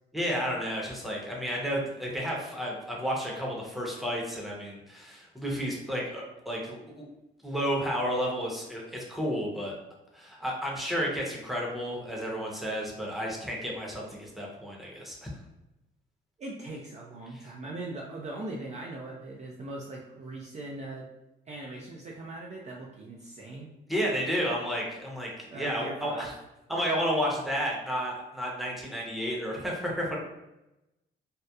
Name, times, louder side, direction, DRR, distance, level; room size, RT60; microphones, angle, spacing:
voice 1, 0.1-7.0 7.4-9.7 10.1-15.3 17.3-17.5 23.9-26.3 26.7-30.2, equal, ahead, -3 dB, 0.7 m, -32 dB
voice 2, 16.4-21.1 21.5-23.7 25.5-26.3, right 2 dB, 35° right, -2 dB, 0.4 m, -40 dB
2.8 x 2.0 x 2.3 m, 0.93 s
cardioid pair, 90°, 20 cm